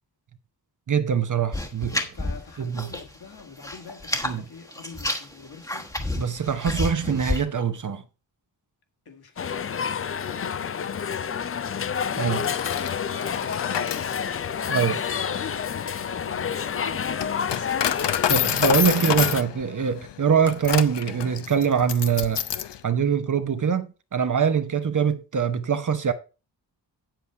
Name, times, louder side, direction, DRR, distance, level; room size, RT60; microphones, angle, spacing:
voice 1, 0.9-2.1 2.6-2.9 4.2-4.4 6.2-8.0 12.2-12.4 14.7-15.0 18.3-22.4 22.8-26.1, right 7 dB, 45° right, 0.8 m, -23 dB
sound 1, 1.5-3.1 3.4-4.3 4.7-7.4, left 1 dB, 10° left, 1.1 m, -30 dB
voice 2, 2.1-6.0 9.1-11.0 12.1-14.1 14.7-18.3 18.9-19.4, left 5 dB, 60° left, 1.9 m, -43 dB
sound 2, 9.4-19.4, left 7 dB, 35° left, 0.4 m, -29 dB
Coin (dropping), 12.3-22.8, left 10 dB, 75° left, 0.7 m, -29 dB
8.4 x 7.7 x 4.6 m
wide cardioid pair, 125°, 43 cm